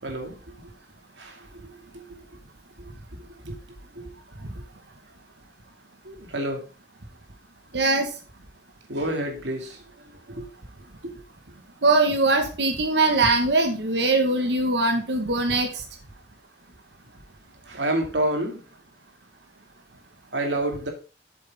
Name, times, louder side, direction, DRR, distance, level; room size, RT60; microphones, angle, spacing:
voice 1, 0.0-0.4 1.2-1.4 1.9-2.2 3.5-3.6 4.0-4.1 6.0-6.6 8.9-9.8 10.4-10.5 17.7-18.6 20.3-20.9, right 1 dB, 90° right, 2 dB, 2.4 m, -28 dB
voice 2, 7.7-8.1 11.8-15.7, right 2 dB, 75° right, 4 dB, 1.5 m, -21 dB
8.1 x 7.6 x 3.6 m, 0.34 s
head